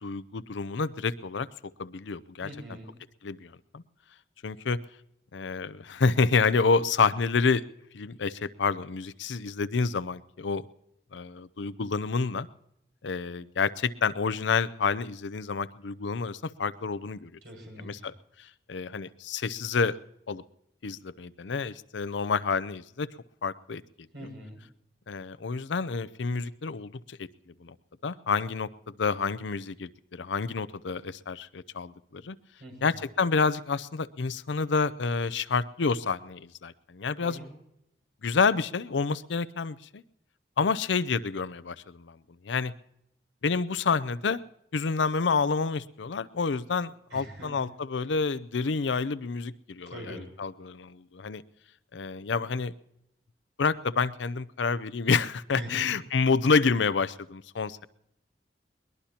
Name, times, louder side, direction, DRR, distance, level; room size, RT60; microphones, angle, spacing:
voice 1, 0.0-1.5 1.8-2.5 3.2-3.8 4.4-4.8 5.3-7.6 7.9-10.6 11.1-12.5 13.0-17.4 17.8-18.1 18.7-20.0 20.3-20.4 20.8-23.1 23.4-23.8 24.2-24.3 25.1-27.3 27.6-27.7 28.0-32.4 32.8-37.4 38.2-40.0 40.6-42.2 42.4-42.7 43.4-44.4 44.7-51.4 51.9-52.7 53.6-57.9, left 4 dB, 85° left, 17 dB, 0.6 m, -28 dB
voice 2, 2.4-2.9 17.4-18.1 24.1-24.6 32.6-32.7 37.2-37.5 47.1-47.7 49.9-50.3 55.6-55.8, right 1 dB, 80° right, 0 dB, 6.5 m, -42 dB
22.0 x 20.5 x 2.9 m, 0.80 s
head